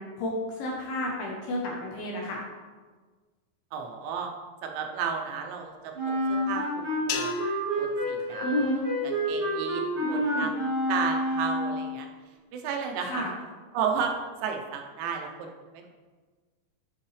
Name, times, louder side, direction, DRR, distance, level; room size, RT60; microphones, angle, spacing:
voice 1, 0.0-2.4 8.4-8.9 10.0-10.5 13.0-13.3, left 1 dB, 70° left, -2 dB, 2.6 m, -30 dB
voice 2, 3.7-4.3 4.6-8.5 9.0-10.5 10.9-12.1 12.5-13.3 13.7-14.1 14.4-15.9, right 6 dB, 85° right, 3 dB, 3.3 m, -33 dB
Wind instrument woodwind instrument, 5.9-11.9, equal, 45° right, 1.9 m, -29 dB
sound 1, 7.1-9.5, left 9 dB, 85° left, 2.9 m, -39 dB
11.5 x 5.5 x 3.3 m, 1.4 s
omnidirectional pair, 5.3 m